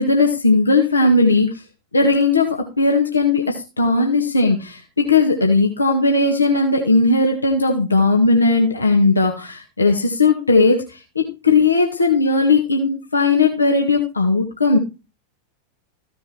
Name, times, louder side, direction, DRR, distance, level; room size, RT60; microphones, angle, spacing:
voice 1, 0.0-1.5 1.9-14.8, left 3 dB, 80° left, 2 dB, 1.9 m, -17 dB
15.0 x 6.9 x 4.4 m, 0.30 s
figure-of-eight pair, 90°, 0 cm